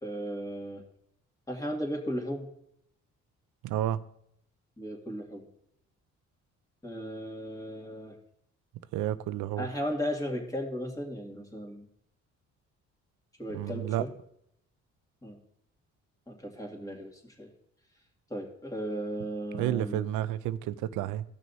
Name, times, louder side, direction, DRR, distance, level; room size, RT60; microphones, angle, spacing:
voice 1, 0.0-0.8 1.5-2.5 4.8-5.5 6.8-8.2 9.6-11.9 13.4-14.1 15.2-15.4 16.3-17.5 18.3-20.1, equal, 10° left, 2.2 m, -36 dB
voice 2, 3.6-4.0 8.9-9.7 13.5-14.0 19.5-21.2, right 12 dB, 90° right, 0.5 m, -30 dB
16.5 x 6.2 x 2.7 m
cardioid pair, 90°, 30 cm